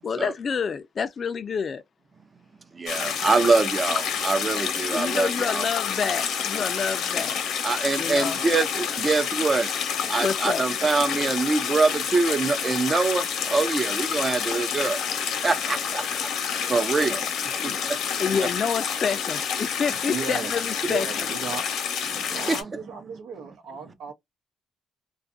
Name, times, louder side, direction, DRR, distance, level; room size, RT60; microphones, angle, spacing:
voice 1, 0.0-1.8 4.9-7.4 8.0-8.4 10.2-10.7 17.6-17.8 18.2-21.1, left 6 dB, 45° left, 0.3 m, -28 dB
voice 2, 2.7-5.7 7.6-9.7 10.1-15.0 15.4-16.1 16.7-17.3 17.6-18.0 22.1-22.6, right 3 dB, 30° right, 0.5 m, -24 dB
sound 1, 2.9-22.6, left 7 dB, 80° left, 0.8 m, -28 dB
voice 3, 19.9-21.6 22.3-24.1, right 5 dB, 85° right, 0.7 m, -36 dB
2.5 x 2.3 x 2.4 m
cardioid pair, 90°, 0 cm